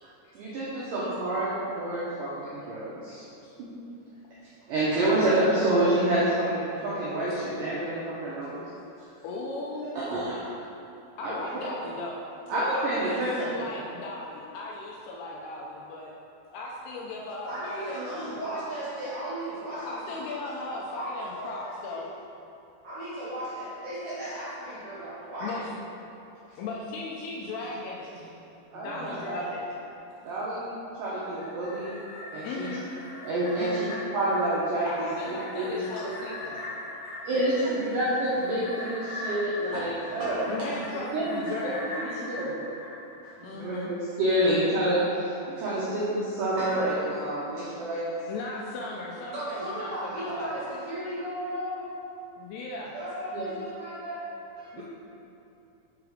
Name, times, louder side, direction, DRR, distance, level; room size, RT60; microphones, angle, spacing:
voice 1, 0.4-3.2 3.6-3.7 4.7-8.6 10.0-10.6 11.2-11.3 12.5-13.6 25.4-25.5 28.7-29.4 30.3-30.7 31.0-32.0 32.3-32.7 33.2-33.9 34.1-34.9 35.3-36.1 37.3-40.5 41.1-42.0 42.3-42.6 43.4-48.1 53.3-53.5, right 1 dB, 80° right, -8 dB, 1.9 m, -28 dB
voice 2, 9.2-9.9 11.2-12.2 12.5-16.1 16.5-18.4 19.9-22.1 25.4-25.7 26.6-28.1 28.7-29.7 32.4-32.9 33.6-33.9 34.8-36.6 40.5-42.4 43.4-43.9 47.8-48.0 48.3-50.5 52.4-52.9 54.7-54.8, left 2 dB, 80° left, -3 dB, 2.4 m, -37 dB
voice 3, 17.4-22.0 22.8-25.7 26.5-26.6 28.1-28.3 28.9-29.0 37.3-38.0 39.7-40.9 43.2-43.5 49.3-51.9 52.9-54.3, right 1 dB, 55° right, -10 dB, 2.1 m, -36 dB
sound 1, 31.2-43.8 44.1-44.2, left 1 dB, 60° left, 2.2 m, -40 dB
6.3 x 4.8 x 4.9 m, 2.8 s
omnidirectional pair, 5.0 m